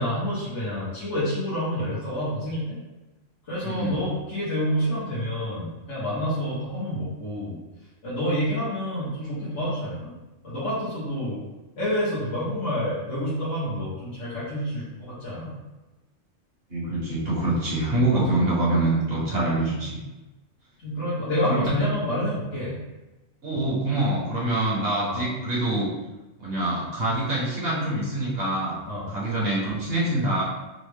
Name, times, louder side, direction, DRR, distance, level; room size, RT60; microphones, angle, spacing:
voice 1, 0.0-2.8 3.4-7.6 8.0-10.1 10.4-11.4 11.8-15.5 18.3-18.4 19.3-19.5 20.8-22.8 25.1-25.2 28.8-29.1, equal, 65° left, -10 dB, 1.5 m, -28 dB
voice 2, 3.6-4.0 16.7-20.0 21.5-21.6 23.4-25.9 26.4-28.8 29.1-30.4, right 2 dB, 55° right, -5 dB, 1.2 m, -25 dB
4.0 x 2.2 x 3.3 m, 1.1 s
omnidirectional pair, 1.3 m